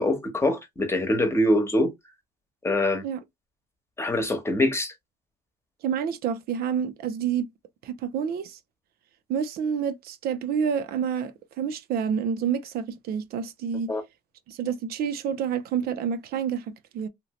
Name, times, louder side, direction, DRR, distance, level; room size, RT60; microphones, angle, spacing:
voice 1, 0.0-1.9 2.6-3.0 4.0-4.9 13.9-14.0, left 1 dB, 15° left, 1.0 m, -24 dB
voice 2, 5.8-7.5 7.8-8.6 9.3-13.9 14.5-17.1, right 7 dB, 65° right, 0.5 m, -28 dB
2.8 x 2.6 x 3.0 m
cardioid pair, 110°, 17 cm